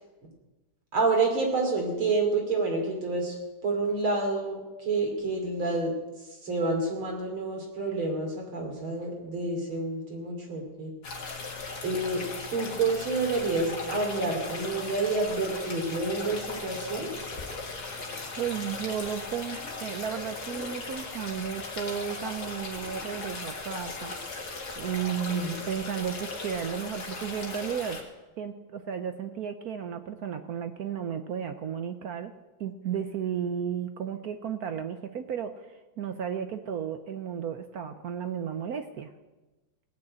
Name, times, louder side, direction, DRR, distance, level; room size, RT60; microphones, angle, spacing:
voice 1, 0.9-3.4 3.6-5.9 6.4-10.9 11.8-12.2 12.5-17.1 25.3-25.6, right 3 dB, 90° right, 1 dB, 3.9 m, -28 dB
sound 1, 11.0-28.0, left 3 dB, 50° left, 2.4 m, -38 dB
voice 2, 18.4-24.1 24.8-28.0 28.4-32.3 32.6-35.7 36.0-39.1, right 8 dB, 65° right, 8 dB, 1.0 m, -33 dB
18.0 x 6.5 x 8.7 m, 1.1 s
omnidirectional pair, 2.2 m